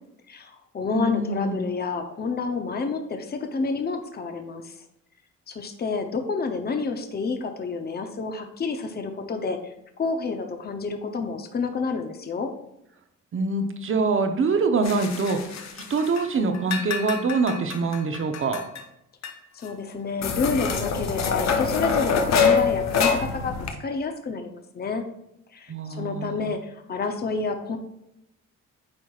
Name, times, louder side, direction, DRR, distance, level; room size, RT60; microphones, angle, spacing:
voice 1, 0.3-4.7 5.5-9.6 10.0-12.5 19.5-25.0 25.5-27.8, left 4 dB, 35° left, 6 dB, 0.8 m, -29 dB
voice 2, 0.9-1.6 13.3-15.4 15.9-18.6 25.7-26.5, right 3 dB, 45° right, 6 dB, 0.9 m, -24 dB
sound 1, 14.8-16.3 16.5-18.8 19.2-19.3 19.6-19.7 20.2-23.7, left 5 dB, 60° left, 0.9 m, -25 dB
8.6 x 4.5 x 2.4 m, 0.84 s
cardioid pair, 90°, 30 cm